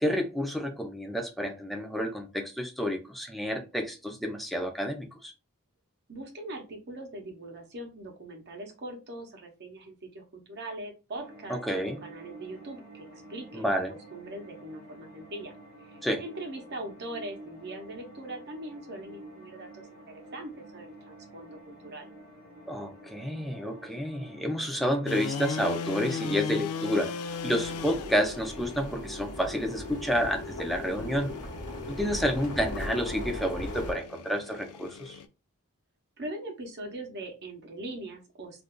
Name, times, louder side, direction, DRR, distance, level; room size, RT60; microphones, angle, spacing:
voice 1, 0.0-5.3 11.5-12.0 13.5-13.9 16.0-16.2 22.7-27.1 27.4-31.3 31.9-35.2, equal, ahead, 0.5 m, -30 dB
voice 2, 6.1-15.5 15.8-22.1 27.8-28.2 32.1-32.3 36.2-38.6, right 1 dB, 50° right, 0.8 m, -41 dB
sound 1, 11.2-30.1, right 1 dB, 45° left, 0.9 m, -49 dB
sound 2, 25.1-35.3, left 5 dB, 85° left, 0.4 m, -39 dB
sound 3, 27.3-33.9, left 1 dB, 70° left, 0.9 m, -38 dB
2.5 x 2.3 x 3.6 m
head